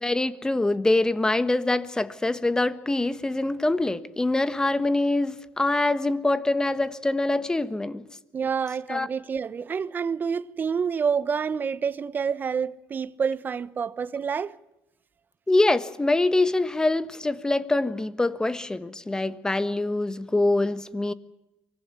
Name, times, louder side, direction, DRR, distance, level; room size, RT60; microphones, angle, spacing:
voice 1, 0.0-8.0 8.9-9.1 15.5-21.1, left 2 dB, 10° left, 1.3 m, -24 dB
voice 2, 8.3-14.6, right 6 dB, 35° right, 0.9 m, -28 dB
24.5 x 19.0 x 8.3 m
supercardioid pair, 95°, 6 cm